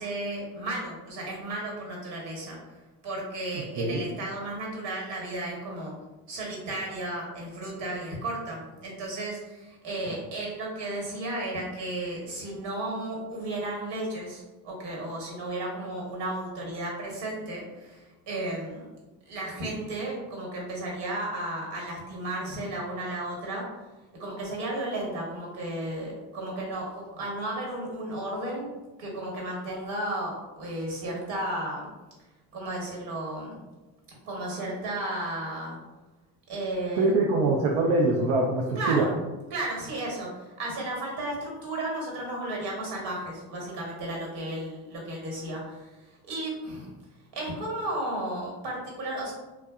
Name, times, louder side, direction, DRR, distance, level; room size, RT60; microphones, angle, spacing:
voice 1, 0.0-2.6 3.0-5.9 6.3-18.8 19.3-23.6 24.2-28.7 29.0-31.9 32.5-33.6 34.2-35.8 36.5-37.1 38.7-39.1 39.5-40.3 40.6-45.9 46.2-46.9 47.3-49.3, right 1 dB, 60° right, -2 dB, 1.2 m, -34 dB
voice 2, 37.0-39.1, right 2 dB, 75° right, 0 dB, 0.6 m, -24 dB
2.7 x 2.2 x 2.3 m, 1.1 s
supercardioid pair, 100°, 47 cm